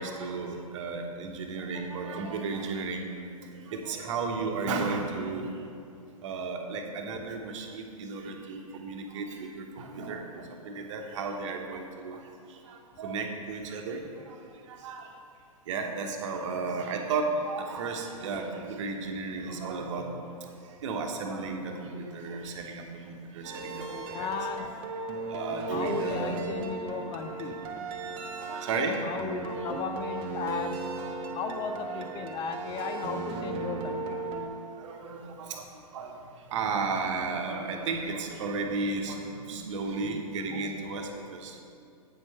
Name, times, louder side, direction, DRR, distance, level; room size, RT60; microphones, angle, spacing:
voice 1, 0.0-3.0 3.5-5.6 6.2-12.2 12.5-14.4 14.7-15.1 15.7-20.5 20.8-24.5 25.3-26.4 28.4-29.1 29.5-29.7 34.8-35.7 35.9-36.2 36.5-41.6, right 4 dB, 50° right, 3 dB, 1.1 m, -34 dB
sound 1, 23.4-34.5, right 3 dB, 30° right, 1.0 m, -36 dB
voice 2, 24.1-24.7 25.7-27.6 29.0-30.8 31.3-34.2, left 6 dB, 25° left, 7 dB, 0.5 m, -35 dB
8.6 x 6.3 x 4.3 m, 2.4 s
hypercardioid pair, 120°, 19 cm